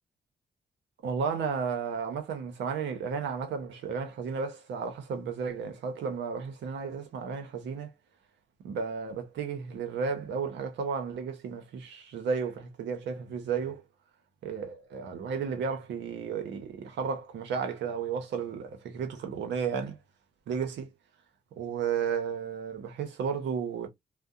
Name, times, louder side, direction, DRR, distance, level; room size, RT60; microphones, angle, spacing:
voice 1, 1.0-7.9 8.6-13.8 14.4-20.0 20.5-20.9 21.6-23.9, right 6 dB, 75° right, 0.7 m, -33 dB
2.6 x 2.1 x 2.3 m
supercardioid pair, 50°, 19 cm